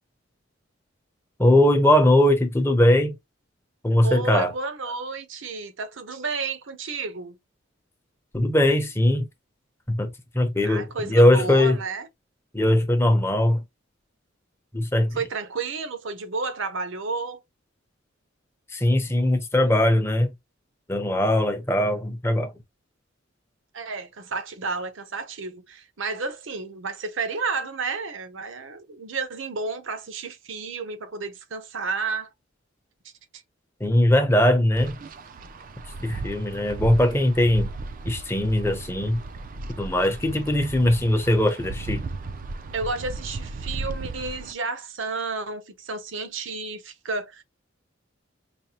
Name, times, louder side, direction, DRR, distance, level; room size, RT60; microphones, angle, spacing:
voice 1, 1.4-3.1 3.8-4.5 8.3-9.3 9.9-11.8 12.5-13.6 14.7-15.2 18.7-20.3 20.9-22.5 33.8-35.0 36.0-37.7 38.1-39.2 39.8-42.0, left 1 dB, 15° left, 0.8 m, -20 dB
voice 2, 4.0-7.4 10.6-12.1 15.1-17.4 23.7-32.3 42.7-47.4, right 4 dB, 75° right, 0.8 m, -31 dB
Wind, 34.8-44.5, right 3 dB, 45° right, 0.4 m, -35 dB
5.1 x 2.1 x 2.9 m
head